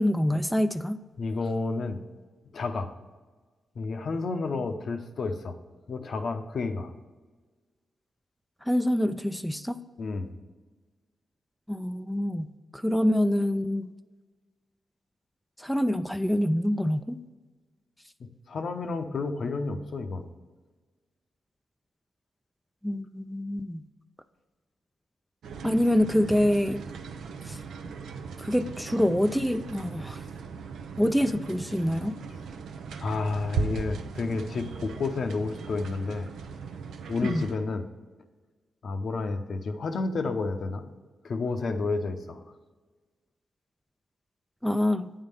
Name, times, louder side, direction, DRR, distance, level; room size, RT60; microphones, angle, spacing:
voice 1, 0.0-1.0 8.7-9.8 11.7-13.9 15.6-17.2 22.8-23.8 25.6-26.8 27.5-27.6 28.4-30.2 31.0-32.2 37.2-37.5 44.6-45.1, left 1 dB, ahead, 9 dB, 0.4 m, -26 dB
voice 2, 1.2-2.0 2.5-3.0 3.8-5.6 5.9-6.9 10.0-10.3 18.5-20.3 33.0-36.3 37.1-37.9 38.8-40.9 41.2-42.4, left 3 dB, 65° left, 7 dB, 0.7 m, -30 dB
sound 1, 25.4-37.6, right 5 dB, 80° right, 0.5 m, -38 dB
8.8 x 3.7 x 6.7 m, 1.3 s
supercardioid pair, 45°, 0 cm